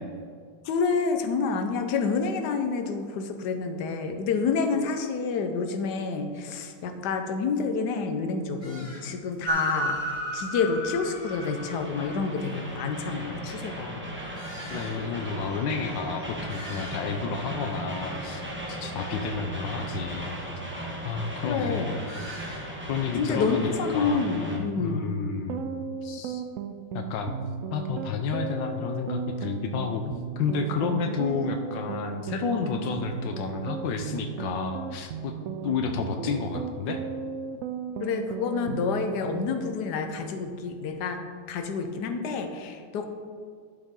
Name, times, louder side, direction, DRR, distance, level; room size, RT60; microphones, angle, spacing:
voice 1, 0.6-14.0 21.4-22.0 23.2-25.2 38.0-41.2 41.5-43.0, left 5 dB, 70° left, 6 dB, 1.4 m, -28 dB
sound 1, 6.3-6.5 7.0-7.1 7.4-7.7 8.6-9.3 9.6-9.7 11.4-11.5 12.4-12.5 14.3-15.0 15.5-15.6 15.9-16.0 16.2-17.3 17.7-18.1 22.1-22.7, equal, 40° left, 2.8 m, -45 dB
Train, 9.5-24.6, equal, 5° right, 1.3 m, -35 dB
voice 2, 14.7-20.3 21.0-21.9 22.9-25.7 26.0-26.4 26.9-27.3 27.7-35.3 35.6-37.0, left 5 dB, 85° left, 5 dB, 1.4 m, -31 dB
sound 2, 25.4-39.4, right 6 dB, 80° right, 0.7 m, -35 dB
12.0 x 7.4 x 3.7 m, 2.1 s
omnidirectional pair, 2.0 m